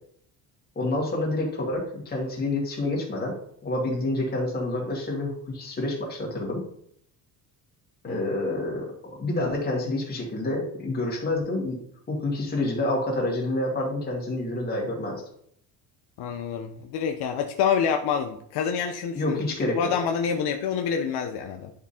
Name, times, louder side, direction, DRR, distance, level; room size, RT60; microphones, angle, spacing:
voice 1, 0.8-3.4 3.6-6.7 8.0-8.9 9.2-11.8 12.1-15.2 19.1-19.8, left 2 dB, 20° left, -3 dB, 2.3 m, -28 dB
voice 2, 16.2-19.4 19.7-21.7, left 7 dB, 70° left, 4 dB, 0.8 m, -27 dB
11.0 x 3.7 x 4.3 m, 0.67 s
cardioid pair, 180°, 41 cm